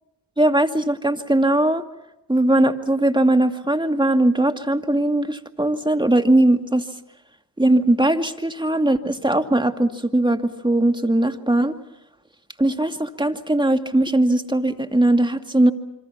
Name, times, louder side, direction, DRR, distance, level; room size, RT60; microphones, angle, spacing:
voice 1, 0.4-1.8 2.3-6.8 7.6-11.7 12.6-15.7, right 1 dB, 10° right, 7 dB, 2.3 m, -19 dB
27.0 x 25.0 x 5.9 m, 0.90 s
supercardioid pair, 40°, 46 cm